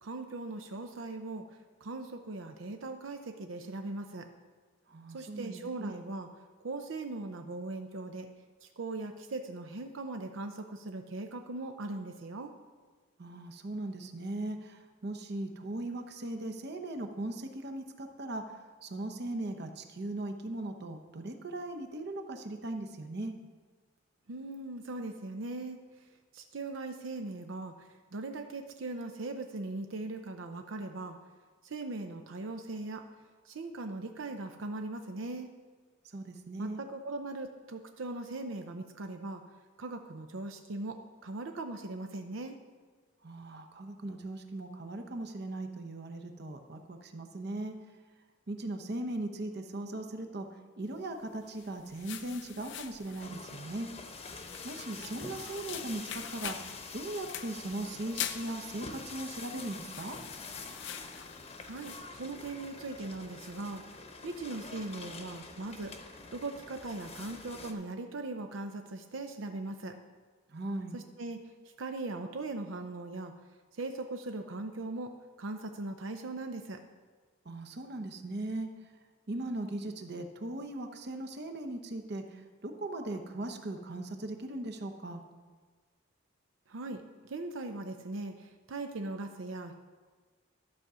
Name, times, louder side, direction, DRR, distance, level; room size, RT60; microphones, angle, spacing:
voice 1, 0.0-1.5 1.8-4.3 5.1-6.3 6.6-8.3 8.6-12.5 24.3-25.8 26.3-31.2 31.6-33.1 33.4-35.5 36.6-39.4 39.8-42.6 61.6-63.9 64.2-70.0 70.9-71.5 71.8-73.3 73.8-75.1 75.4-76.8 86.7-89.7, right 2 dB, 85° right, 6 dB, 0.6 m, -39 dB
voice 2, 4.9-5.9 13.2-23.3 36.1-36.8 43.2-47.7 48.5-50.5 50.8-53.9 54.6-56.6 56.9-60.2 70.5-71.0 77.4-78.7 79.3-85.2, right 2 dB, 55° right, 5 dB, 0.9 m, -39 dB
sound 1, 51.3-62.1, left 10 dB, 65° left, 0.5 m, -45 dB
sound 2, 53.2-67.7, left 3 dB, 30° left, 0.8 m, -46 dB
12.0 x 4.9 x 6.7 m, 1.4 s
head